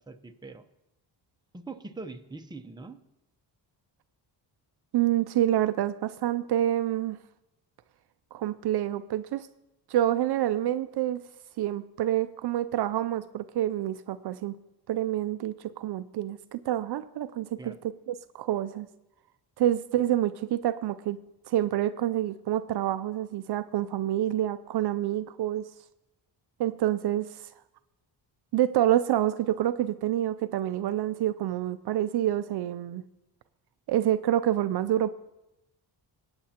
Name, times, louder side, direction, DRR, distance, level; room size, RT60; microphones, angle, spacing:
voice 1, 0.1-0.7 1.5-3.0 17.6-17.8, right 3 dB, 10° right, 6 dB, 0.8 m, -42 dB
voice 2, 4.9-7.2 8.3-9.5 9.9-11.2 11.6-14.6 14.9-17.7 18.1-18.9 19.6-21.2 21.5-25.6 26.6-27.4 28.5-33.0 33.9-35.1, right 12 dB, 65° right, 12 dB, 0.5 m, -27 dB
20.5 x 8.7 x 2.9 m, 0.91 s
cardioid pair, 90°, 43 cm